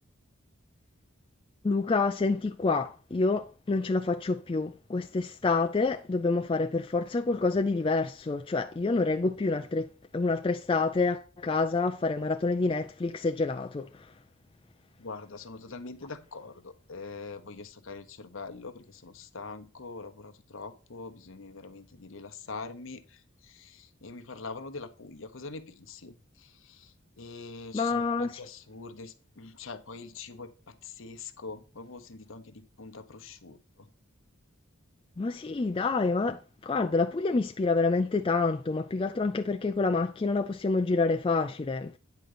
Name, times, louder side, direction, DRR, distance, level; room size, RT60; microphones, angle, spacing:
voice 1, 1.6-9.9 10.1-13.9 27.7-28.4 35.2-42.0, left 3 dB, 25° left, 0.3 m, -27 dB
voice 2, 15.0-33.9, left 4 dB, 65° left, 0.9 m, -44 dB
9.4 x 3.8 x 6.6 m
head